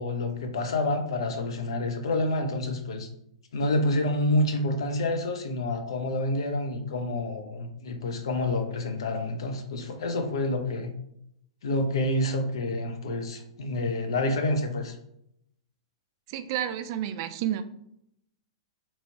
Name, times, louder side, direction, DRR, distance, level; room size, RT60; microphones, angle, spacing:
voice 1, 0.0-3.1 3.5-10.9 11.6-15.0, left 1 dB, 70° left, 5 dB, 0.6 m, -28 dB
voice 2, 16.3-17.6, right 11 dB, 45° right, 10 dB, 0.3 m, -30 dB
3.0 x 2.8 x 2.7 m, 0.73 s
hypercardioid pair, 110°, 3 cm